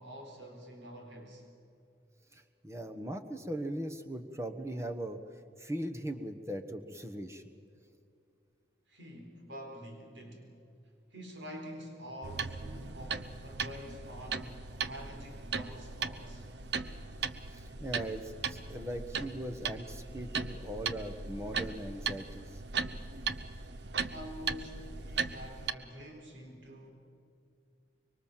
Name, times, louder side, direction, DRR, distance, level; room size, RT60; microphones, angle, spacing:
voice 1, 0.0-1.5 8.9-10.5 11.1-16.5 24.1-26.9, equal, 85° right, 3 dB, 4.2 m, -47 dB
voice 2, 2.3-5.2 5.6-7.5 17.5-22.6, right 1 dB, 15° right, 6 dB, 1.2 m, -39 dB
sound 1, 12.2-25.7, right 5 dB, 70° right, 0.8 m, -38 dB
24.5 x 23.5 x 7.5 m, 2.5 s
head